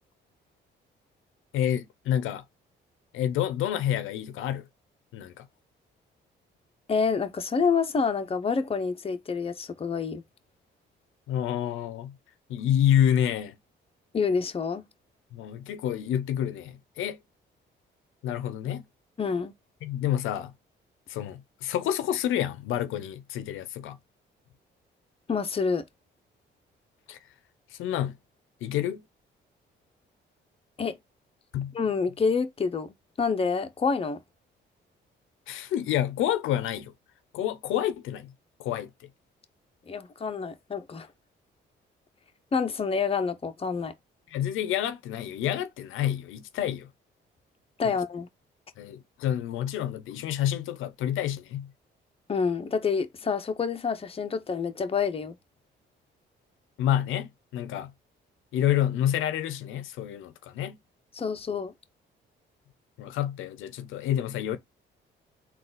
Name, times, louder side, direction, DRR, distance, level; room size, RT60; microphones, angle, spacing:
voice 1, 1.5-2.4 3.1-4.7 5.1-5.5 11.3-12.1 12.5-13.6 15.3-17.2 18.2-18.8 19.8-20.5 21.1-24.0 27.1-27.2 27.7-28.2 28.6-29.0 31.5-31.7 35.5-36.9 37.3-38.3 38.6-38.9 44.3-46.9 47.8-48.0 48.8-51.7 56.8-57.9 58.5-60.8 63.0-64.6, left 11 dB, 85° left, 0.6 m, -28 dB
voice 2, 6.9-10.2 14.1-14.8 19.2-19.5 25.3-25.8 30.8-31.0 31.7-34.2 39.9-41.1 42.5-43.9 47.8-48.3 52.3-55.4 61.1-61.7, left 5 dB, 30° left, 0.7 m, -28 dB
4.0 x 2.4 x 3.8 m
cardioid pair, 90°, 20 cm